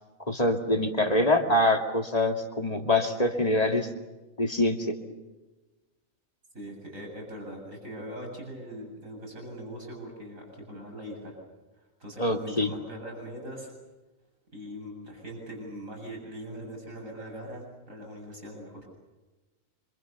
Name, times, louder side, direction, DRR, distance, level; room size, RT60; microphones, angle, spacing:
voice 1, 0.3-3.9 4.4-5.0 12.2-12.7, left 1 dB, 30° left, 3 dB, 2.5 m, -25 dB
voice 2, 6.5-11.4 12.0-13.7 14.5-18.9, equal, 75° right, 1 dB, 8.3 m, -41 dB
27.0 x 26.5 x 6.9 m, 1.1 s
omnidirectional pair, 1.4 m